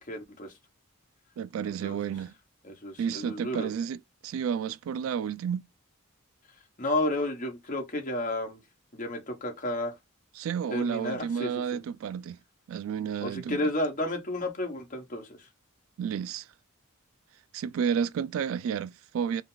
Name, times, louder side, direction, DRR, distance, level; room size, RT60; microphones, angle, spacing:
voice 1, 0.1-0.5 1.6-2.0 2.6-3.7 6.8-8.6 8.9-9.9 10.7-11.6 13.2-15.5, left 1 dB, 40° left, 1.5 m, -32 dB
voice 2, 1.4-2.3 3.0-4.0 4.2-5.6 10.4-12.4 12.7-13.6 16.0-16.5 17.5-19.4, right 7 dB, 75° right, 0.3 m, -31 dB
5.3 x 2.3 x 3.9 m
head